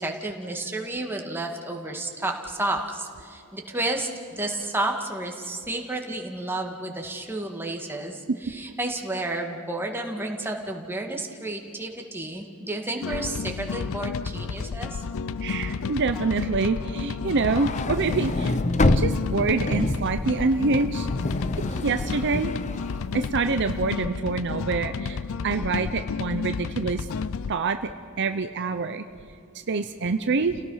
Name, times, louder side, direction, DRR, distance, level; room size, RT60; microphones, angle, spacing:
voice 1, 0.0-15.0, right 2 dB, 10° right, 2 dB, 2.0 m, -31 dB
sound 1, 13.0-27.6, left 5 dB, 65° left, 0.5 m, -31 dB
voice 2, 15.4-18.6 18.9-21.1 21.7-22.5 23.1-27.1 27.5-27.9 28.2-29.0 29.7-30.6, right 4 dB, 50° right, 8 dB, 0.7 m, -26 dB
sound 2, 17.4-23.7, left 2 dB, 30° left, 0.7 m, -27 dB
30.0 x 17.5 x 5.7 m, 2.5 s
head